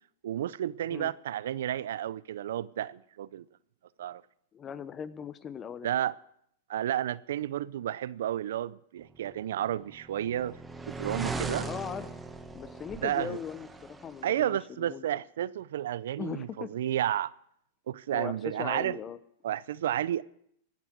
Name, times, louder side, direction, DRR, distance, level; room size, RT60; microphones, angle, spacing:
voice 1, 0.2-3.4 4.0-4.2 5.8-6.1 6.7-10.6 10.9-11.7 13.0-13.4 14.2-17.3 17.9-19.0 19.4-20.2, right 11 dB, 75° right, 0.5 m, -31 dB
voice 2, 4.5-5.9 11.6-12.1 12.5-15.1 16.2-16.7 18.1-19.2, left 8 dB, 25° left, 0.9 m, -39 dB
sound 1, 9.5-14.4, right 3 dB, 10° right, 1.2 m, -39 dB
16.0 x 10.0 x 6.1 m
hypercardioid pair, 115°, 0 cm